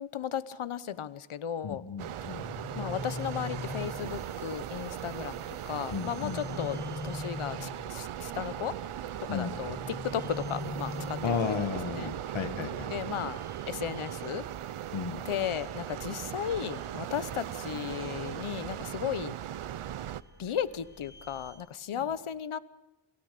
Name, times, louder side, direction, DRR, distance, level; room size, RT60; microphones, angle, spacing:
voice 1, 0.0-1.8 2.7-8.7 9.3-11.7 12.0-12.1 12.9-13.4 13.7-14.5 15.2-19.3 20.4-22.6, left 9 dB, 85° left, 15 dB, 1.1 m, -35 dB
voice 2, 1.6-2.5 5.9-6.7 9.3-9.6 11.2-12.9 14.9-15.2, left 5 dB, 70° left, 7 dB, 1.9 m, -34 dB
sound 1, 2.0-20.2, right 11 dB, 90° right, 0.8 m, -38 dB
sound 2, 2.3-4.3 6.0-8.0 9.7-11.7, left 3 dB, 20° left, 0.8 m, -40 dB
sound 3, 2.9-21.5, right 2 dB, 50° right, 6.7 m, -55 dB
28.0 x 16.5 x 6.8 m, 0.99 s
wide cardioid pair, 90°, 49 cm